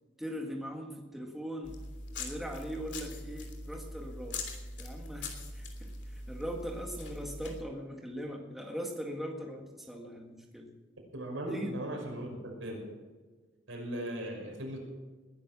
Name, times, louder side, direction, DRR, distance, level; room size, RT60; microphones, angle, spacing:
voice 1, 0.2-1.8 2.2-4.4 4.8-10.7 11.5-11.8, equal, ahead, 1 dB, 1.7 m, -40 dB
sound 1, 1.6-7.6, left 2 dB, 60° left, 3.1 m, -42 dB
voice 2, 11.1-12.8 13.7-14.8, right 1 dB, 85° right, 1 dB, 5.9 m, -38 dB
20.5 x 11.0 x 6.1 m, 1.4 s
head